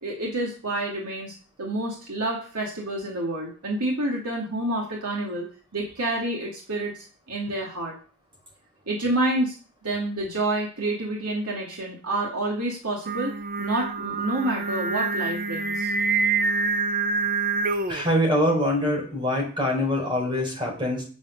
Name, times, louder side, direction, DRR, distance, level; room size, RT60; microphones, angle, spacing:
voice 1, 0.0-5.4 5.7-8.0 8.9-9.6 9.8-15.9, right 1 dB, 90° right, -2 dB, 2.5 m, -28 dB
Singing, 13.1-18.1, right 4 dB, 40° right, 0.9 m, -26 dB
voice 2, 17.9-21.0, left 1 dB, 20° right, -1 dB, 5.0 m, -24 dB
9.4 x 7.5 x 6.5 m, 0.41 s
head